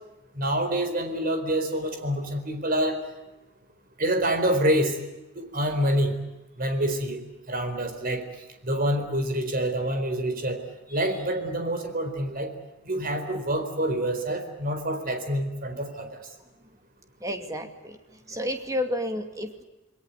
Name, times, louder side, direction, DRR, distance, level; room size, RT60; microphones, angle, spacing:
voice 1, 0.3-3.0 4.0-5.0 5.4-6.1 6.6-7.2 7.5-8.2 8.6-10.6 10.9-12.5 12.9-16.2, right 1 dB, 40° right, 7 dB, 4.3 m, -26 dB
voice 2, 17.2-18.0 18.3-19.6, left 1 dB, 15° right, 6 dB, 2.4 m, -31 dB
28.5 x 21.0 x 8.4 m, 1.0 s
head